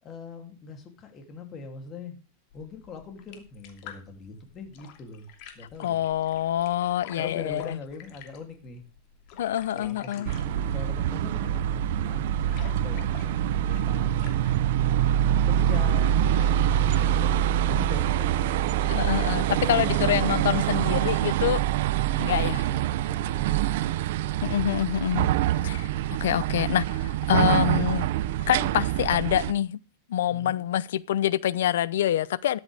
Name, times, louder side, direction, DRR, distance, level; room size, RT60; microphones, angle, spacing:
voice 1, 0.0-2.2 2.5-5.3 5.5-6.0 6.8-8.8 9.7-12.3 12.6-14.7 15.1-19.1 19.5-20.4 22.0-24.5 30.3-30.6, left 3 dB, 25° left, 2.9 m, -42 dB
sound 1, 2.5-17.1, left 8 dB, 45° left, 2.7 m, -50 dB
voice 2, 5.8-7.8 9.4-10.3 18.8-21.6 22.2-22.7 24.4-25.3 25.6-28.1 28.5-29.8 30.1-32.6, left 11 dB, 85° left, 0.7 m, -26 dB
sound 2, 10.3-29.5, right 11 dB, 65° right, 0.6 m, -25 dB
13.5 x 11.0 x 3.5 m
supercardioid pair, 155°, 0 cm